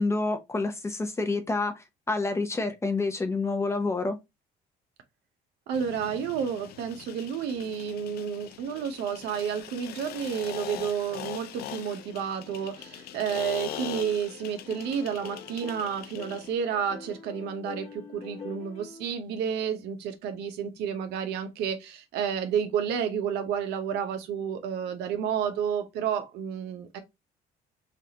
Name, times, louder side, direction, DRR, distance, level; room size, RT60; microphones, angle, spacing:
voice 1, 0.0-4.2, left 3 dB, 15° left, 0.6 m, -28 dB
sound 1, 5.7-16.5, left 12 dB, 65° left, 0.4 m, -42 dB
voice 2, 5.7-27.0, right 7 dB, 85° right, 0.8 m, -31 dB
sound 2, 12.5-19.1, left 5 dB, 40° left, 1.0 m, -46 dB
3.4 x 2.4 x 2.7 m
cardioid pair, 110°, 17 cm